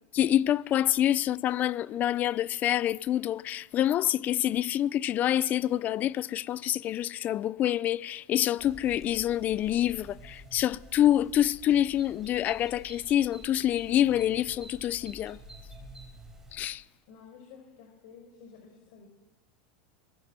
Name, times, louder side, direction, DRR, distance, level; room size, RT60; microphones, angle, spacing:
voice 1, 0.1-15.4 16.5-16.8, left 12 dB, 35° left, 0.6 m, -27 dB
sound 1, 8.6-16.7, right 1 dB, 10° right, 5.7 m, -50 dB
voice 2, 17.1-19.1, left 6 dB, 65° left, 5.7 m, -51 dB
23.0 x 20.0 x 7.6 m
supercardioid pair, 120°, 5 cm